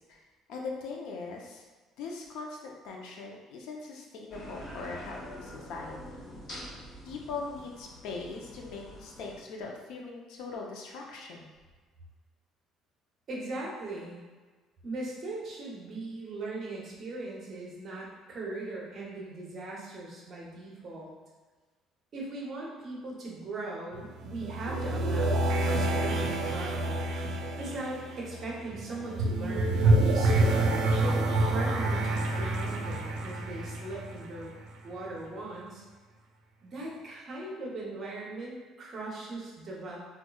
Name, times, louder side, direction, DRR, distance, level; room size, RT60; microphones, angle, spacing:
voice 1, 0.5-1.6 2.0-6.0 7.1-11.5, left 4 dB, 70° left, 0 dB, 0.5 m, -40 dB
sound 1, 4.3-9.4, equal, 45° left, 1.1 m, -45 dB
voice 2, 13.3-14.2 14.8-21.1 22.1-27.0 27.5-34.6 34.8-35.8 36.6-40.0, right 2 dB, 35° right, -4 dB, 0.7 m, -39 dB
sound 2, 23.9-34.7, right 2 dB, 80° right, 0.4 m, -28 dB
4.3 x 2.2 x 2.2 m, 1.4 s
cardioid pair, 165°, 0 cm